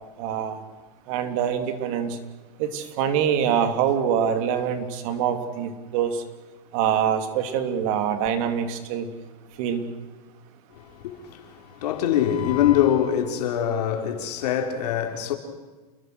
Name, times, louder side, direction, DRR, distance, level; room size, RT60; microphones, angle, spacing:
voice 1, 0.2-0.6 1.1-2.2 2.6-6.2 6.7-9.1 9.6-9.9, right 8 dB, 55° right, 3.2 m, -24 dB
voice 2, 10.7-15.3, left 10 dB, 70° left, 4.3 m, -24 dB
29.0 x 21.5 x 6.4 m
supercardioid pair, 140°, 21 cm